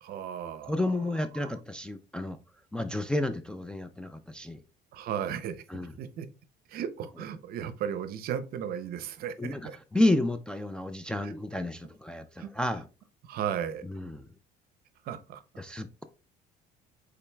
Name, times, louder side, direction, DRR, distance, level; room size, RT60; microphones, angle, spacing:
voice 1, 0.0-0.8 1.3-1.5 4.9-5.6 6.0-6.3 6.7-9.8 11.2-11.3 12.4-12.5 13.2-13.9 15.0-15.4, right 9 dB, 60° right, 0.6 m, -35 dB
voice 2, 0.6-2.4 2.7-4.6 5.7-5.9 9.4-12.9 13.8-14.3 15.6-16.0, left 1 dB, 5° left, 0.3 m, -31 dB
5.7 x 3.9 x 2.2 m
cardioid pair, 130°, 18 cm